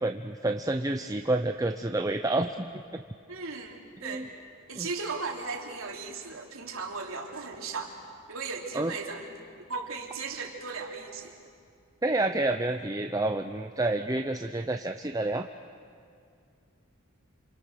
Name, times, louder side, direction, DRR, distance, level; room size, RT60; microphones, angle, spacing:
voice 1, 0.0-2.7 2.9-3.0 4.0-4.3 4.8-4.9 8.7-8.9 12.0-15.5, right 2 dB, 15° right, 6 dB, 0.6 m, -29 dB
voice 2, 3.3-4.3 4.7-8.0 8.3-9.3 9.7-11.4, right 4 dB, 85° right, 1 dB, 3.1 m, -36 dB
28.5 x 27.5 x 6.6 m, 2.3 s
head